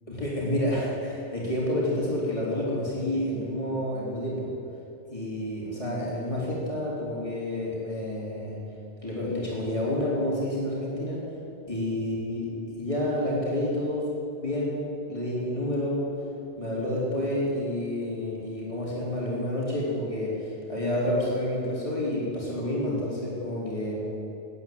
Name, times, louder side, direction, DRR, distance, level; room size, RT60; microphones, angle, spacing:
voice 1, 0.1-4.5 5.1-8.6 9.0-11.2 11.7-12.5 12.8-14.1 14.4-16.0 16.6-24.0, left 1 dB, 30° left, -6 dB, 3.9 m, -29 dB
13.0 x 9.8 x 8.6 m, 2.7 s
omnidirectional pair, 1.1 m